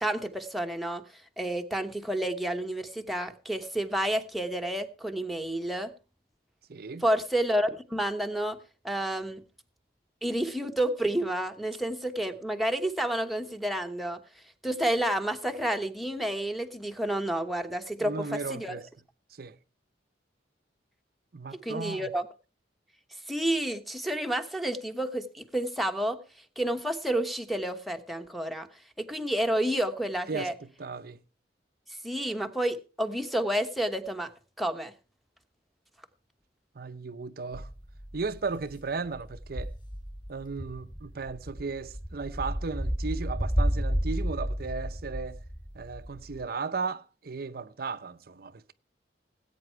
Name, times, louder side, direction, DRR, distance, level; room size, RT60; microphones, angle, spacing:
voice 1, 0.0-5.9 7.0-8.6 8.8-9.4 10.2-14.2 14.6-18.8 21.6-22.2 23.3-26.2 26.6-28.7 29.0-30.5 32.0-34.3 34.6-34.9, right 1 dB, ahead, 1.1 m, -30 dB
voice 2, 6.7-7.0 18.0-18.9 19.3-19.6 21.3-22.1 30.3-30.5 30.8-31.2 36.7-37.7 38.1-39.7 40.3-45.4 45.7-48.7, right 4 dB, 55° right, 0.6 m, -35 dB
sound 1, 37.5-46.4, equal, 25° left, 2.5 m, -32 dB
18.5 x 9.0 x 4.5 m
head